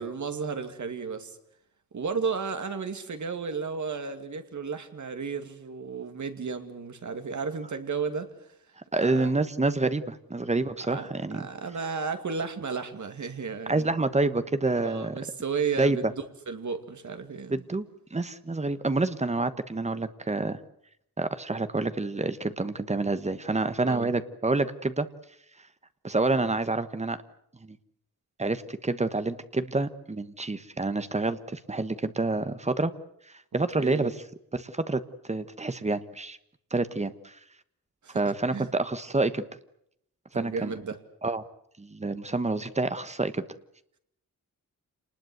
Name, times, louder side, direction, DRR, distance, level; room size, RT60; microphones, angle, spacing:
voice 1, 0.0-1.4 1.9-8.3 9.0-9.3 10.9-11.1 11.3-13.9 14.8-17.6 23.8-24.1 33.8-34.1 38.0-38.2 38.5-38.7 40.3-41.0, right 5 dB, 55° right, 8 dB, 2.5 m, -33 dB
voice 2, 8.9-11.5 13.7-15.1 15.8-16.1 17.5-17.8 18.1-20.6 21.2-25.1 26.0-27.2 27.6-27.8 28.4-32.9 33.5-34.1 34.5-36.4 36.7-37.4 38.1-39.4 40.3-40.7 41.2-41.4 41.8-43.4, right 3 dB, 20° right, 12 dB, 1.2 m, -28 dB
28.0 x 20.0 x 8.0 m, 0.73 s
wide cardioid pair, 155°, 34 cm